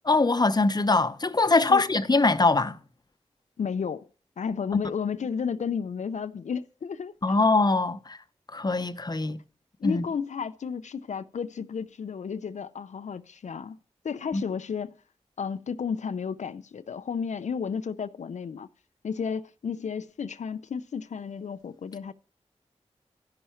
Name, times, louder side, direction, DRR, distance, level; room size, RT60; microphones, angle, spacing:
voice 1, 0.0-2.8 7.2-8.2 8.5-9.4 9.8-10.0 14.3-14.4, left 3 dB, 35° left, 0.7 m, -22 dB
voice 2, 3.6-4.1 4.4-7.1 9.8-13.8 14.0-15.0 15.4-18.7 19.0-22.1, left 6 dB, 80° left, 0.5 m, -32 dB
13.5 x 5.6 x 4.4 m
cardioid pair, 50°, 12 cm